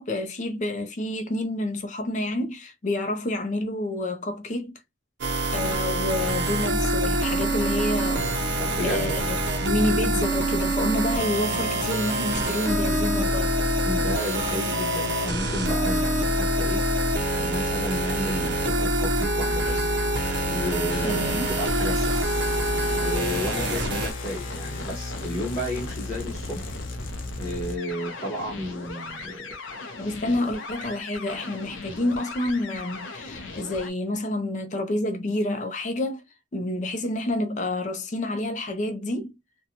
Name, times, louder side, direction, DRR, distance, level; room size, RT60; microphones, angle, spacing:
voice 1, 0.0-4.8 5.5-13.5 21.0-21.5 30.0-36.2 36.5-39.3, left 1 dB, 40° left, 0.5 m, -28 dB
sound 1, 5.2-24.1, right 1 dB, 65° right, 0.7 m, -25 dB
voice 2, 8.6-9.1 13.8-16.8 17.3-20.0 20.5-22.2 23.0-26.7 27.4-29.6, equal, 20° left, 0.9 m, -32 dB
sound 2, 19.0-33.9, left 3 dB, 90° left, 0.6 m, -37 dB
2.6 x 2.2 x 2.8 m
head